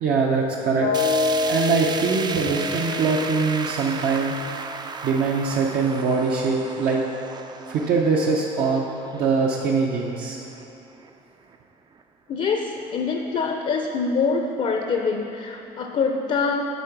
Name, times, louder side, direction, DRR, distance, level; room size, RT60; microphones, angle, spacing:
voice 1, 0.0-0.9 1.5-4.4 5.0-7.0 7.7-8.9 9.1-10.5, right 4 dB, 65° right, -1 dB, 0.7 m, -22 dB
sound 1, 0.8-4.7, left 4 dB, 90° left, 1.2 m, -27 dB
sound 2, 0.9-11.1 11.5-11.6 12.0-12.1 12.9-13.0, right 4 dB, 25° right, 0.3 m, -35 dB
voice 2, 12.3-16.7, left 4 dB, 45° left, 3 dB, 0.5 m, -25 dB
8.3 x 3.9 x 5.8 m, 2.8 s
cardioid pair, 110°, 17 cm